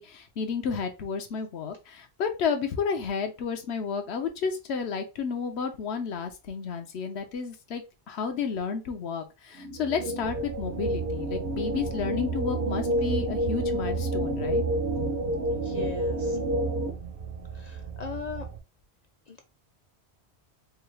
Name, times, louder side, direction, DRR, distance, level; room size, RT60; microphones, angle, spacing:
voice 1, 0.0-14.6, left 6 dB, 80° left, 6 dB, 1.0 m, -32 dB
sound 1, 9.5-16.9, right 1 dB, 75° right, 1.1 m, -29 dB
sound 2, 10.2-18.6, right 6 dB, 55° right, 0.6 m, -40 dB
voice 2, 15.5-16.4 17.5-18.5 19.3-19.4, left 6 dB, 55° left, 4 dB, 0.5 m, -39 dB
4.6 x 2.3 x 3.1 m, 0.28 s
omnidirectional pair, 1.1 m